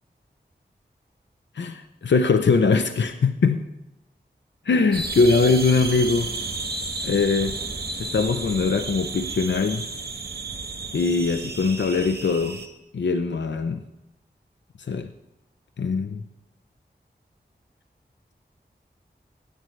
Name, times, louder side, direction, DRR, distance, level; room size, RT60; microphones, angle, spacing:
voice 1, 1.6-3.7 4.7-6.3 7.0-7.6 8.0-9.8 10.9-12.6 12.9-13.8 14.9-15.1 15.8-16.2, left 4 dB, 85° left, 8 dB, 0.6 m, -22 dB
sound 1, 4.9-12.7, right 3 dB, 60° right, 1.3 m, -32 dB
16.5 x 11.0 x 3.2 m, 0.94 s
cardioid pair, 40°, 18 cm